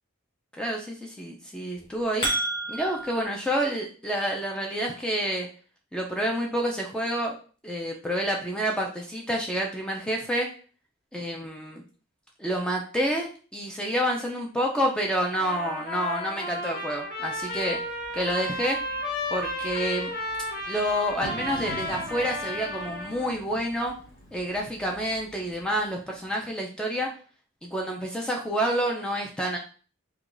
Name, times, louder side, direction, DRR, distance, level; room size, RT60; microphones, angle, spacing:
voice 1, 0.5-2.3 2.7-5.5 5.9-7.3 7.6-10.5 11.1-11.8 12.4-17.8 18.1-18.8 19.3-20.1 20.7-23.9 24.3-27.1 27.6-29.6, equal, 5° left, 0 dB, 0.3 m, -28 dB
sound 1, 1.7-3.2, right 1 dB, 20° left, 1.1 m, -29 dB
Trumpet, 15.3-23.4, left 1 dB, 45° left, 1.0 m, -33 dB
Bird / Fireworks, 17.2-26.4, left 1 dB, 80° left, 0.9 m, -46 dB
4.6 x 2.2 x 2.5 m, 0.40 s
head